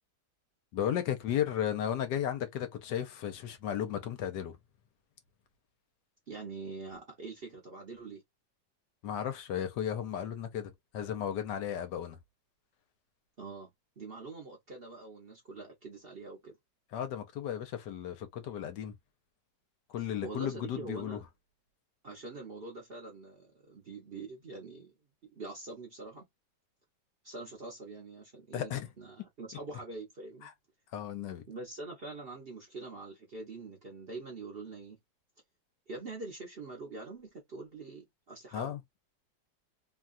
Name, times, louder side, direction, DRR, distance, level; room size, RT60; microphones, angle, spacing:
voice 1, 0.7-4.6 9.0-12.2 16.9-18.9 19.9-21.2 28.5-28.9 30.4-30.5 30.9-31.4 38.5-38.8, left 10 dB, 75° left, 1.4 m, -34 dB
voice 2, 6.3-8.2 13.4-16.5 20.2-21.2 22.0-24.9 25.4-26.2 27.2-30.5 31.5-35.0 35.9-38.8, right 3 dB, 45° right, 0.9 m, -44 dB
3.1 x 2.3 x 2.5 m
omnidirectional pair, 1.9 m